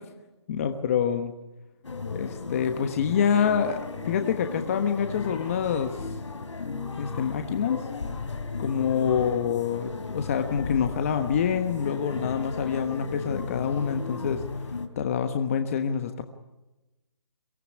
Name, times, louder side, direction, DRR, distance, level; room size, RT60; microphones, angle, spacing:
voice 1, 0.5-1.3 2.1-3.8 4.0-6.1 7.0-7.9 8.6-16.2, left 7 dB, 30° left, 7 dB, 1.3 m, -26 dB
sound 1, 1.8-14.9, left 4 dB, 80° left, 3.5 m, -35 dB
24.0 x 17.5 x 9.8 m, 1.0 s
hypercardioid pair, 165°, 15 cm